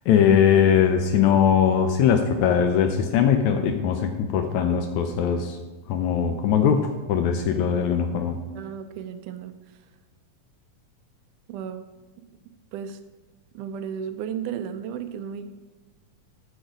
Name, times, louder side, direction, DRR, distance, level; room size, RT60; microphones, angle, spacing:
voice 1, 0.1-5.6 5.9-8.4, left 8 dB, 80° left, 7 dB, 1.7 m, -21 dB
voice 2, 8.6-9.6 11.5-11.8 12.2-12.3 12.7-13.0 13.5-15.5, right 8 dB, 80° right, 9 dB, 2.0 m, -34 dB
11.5 x 6.5 x 5.0 m, 1.2 s
omnidirectional pair, 3.9 m